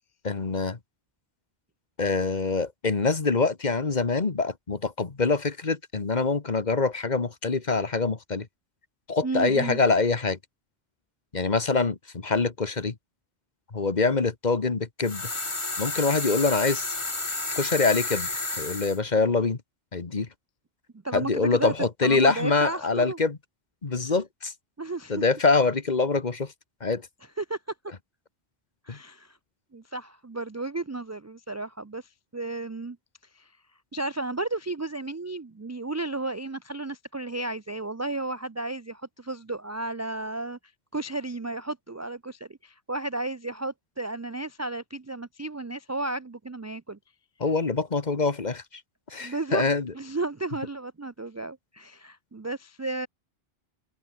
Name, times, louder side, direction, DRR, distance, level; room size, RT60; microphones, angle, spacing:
voice 1, 0.2-0.8 2.0-8.5 9.1-10.4 11.3-12.9 13.7-15.3 15.8-16.9 17.5-18.3 18.6-19.6 19.9-20.3 21.1-23.4 23.8-24.5 25.1-26.5 26.8-27.0 28.9-29.0 47.4-48.6 49.1-49.9, left 4 dB, 45° left, 1.6 m, -25 dB
voice 2, 9.2-9.8 21.0-23.2 24.8-25.2 27.4-27.6 28.9-29.4 29.7-33.0 33.3-33.5 33.9-40.6 40.9-47.0 49.2-49.7 49.9-53.1, right 2 dB, 25° right, 0.3 m, -33 dB
sound 1, 15.0-19.0, left 2 dB, 30° left, 1.9 m, -31 dB
open air
omnidirectional pair, 1.0 m